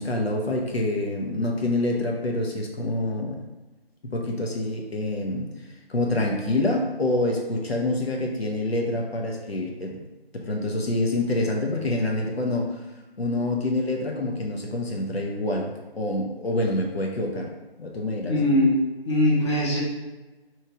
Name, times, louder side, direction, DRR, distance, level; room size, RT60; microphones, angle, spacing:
voice 1, 0.0-3.4 4.1-5.5 5.9-10.0 10.3-12.7 13.2-17.5 17.8-18.3, left 2 dB, 75° left, 1 dB, 1.0 m, -26 dB
voice 2, 18.3-18.7 19.0-19.8, left 1 dB, 25° left, -5 dB, 0.9 m, -21 dB
4.5 x 3.2 x 3.6 m, 1.1 s
figure-of-eight pair, 160°, 31 cm